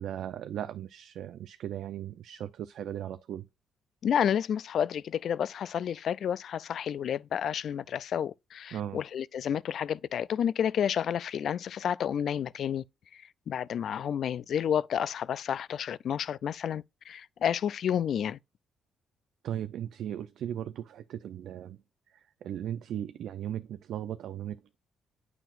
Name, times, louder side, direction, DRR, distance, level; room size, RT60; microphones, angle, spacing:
voice 1, 0.0-3.5 8.7-9.0 19.4-21.8 22.1-24.8, right 10 dB, 75° right, 0.4 m, -37 dB
voice 2, 4.0-12.8 13.1-18.4, left 9 dB, 65° left, 0.3 m, -30 dB
9.1 x 5.8 x 2.5 m
cardioid pair, 90°, 0 cm